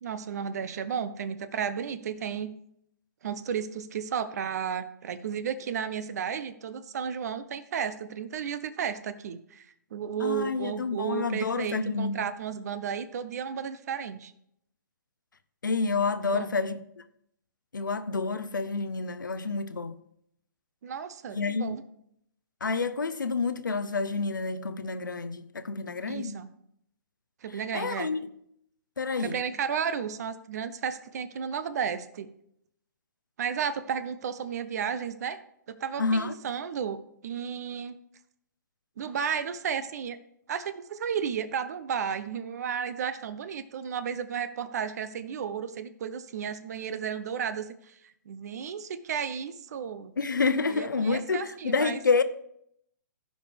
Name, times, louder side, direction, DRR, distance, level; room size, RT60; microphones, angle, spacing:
voice 1, 0.0-2.5 3.2-9.7 9.9-14.3 16.2-16.5 20.8-21.8 26.1-26.5 27.4-28.1 29.2-32.3 33.4-35.4 35.7-38.0 39.0-40.2 40.5-50.1 50.7-52.0, right 7 dB, 55° right, 0.7 m, -33 dB
voice 2, 10.2-12.2 15.6-16.8 17.7-19.9 21.3-21.8 22.6-26.4 27.7-28.3 29.0-29.4 36.0-36.4 50.2-52.2, left 4 dB, 90° left, 0.7 m, -28 dB
15.0 x 5.2 x 3.4 m
hypercardioid pair, 135°, 10 cm